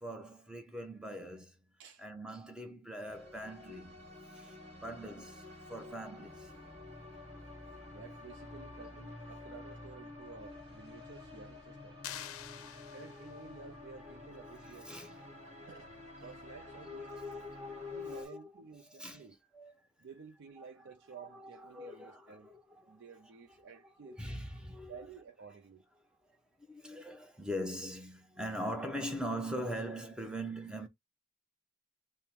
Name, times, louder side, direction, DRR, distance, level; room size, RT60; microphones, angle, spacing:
voice 1, 0.0-1.6 2.0-6.7 7.8-7.9 12.2-13.2 14.0-15.8 16.7-18.4 19.0-19.3 19.5-19.7 20.6-20.7 21.3-23.0 24.0-25.1 26.6-30.9, equal, 5° right, 0.6 m, -42 dB
sound 1, 3.0-18.2, left 2 dB, 30° right, 1.3 m, -50 dB
voice 2, 7.9-12.0 12.5-12.6 12.9-14.9 15.7-15.9 16.2-17.1 17.9-19.4 20.0-22.5 22.9-24.2 24.9-25.8, right 5 dB, 55° right, 0.4 m, -52 dB
sound 2, 12.0-13.6, left 10 dB, 80° left, 0.5 m, -46 dB
3.6 x 2.1 x 4.3 m
head